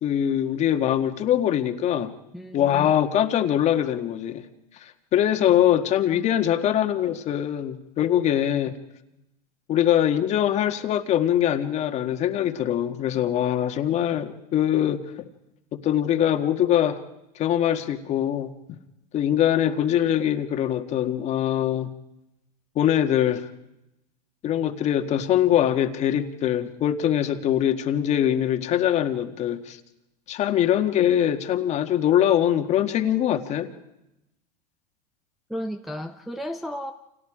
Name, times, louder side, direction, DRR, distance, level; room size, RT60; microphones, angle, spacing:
voice 1, 0.0-2.1 2.5-4.5 4.8-8.8 9.7-15.0 15.7-17.0 17.4-18.8 19.1-21.9 22.8-23.4 24.4-29.8 30.3-33.7, left 10 dB, 30° left, 7 dB, 1.8 m, -23 dB
voice 2, 2.3-2.9 6.1-6.3 35.5-36.9, equal, ahead, 3 dB, 0.8 m, -34 dB
30.0 x 27.5 x 5.0 m, 0.92 s
supercardioid pair, 140°, 21 cm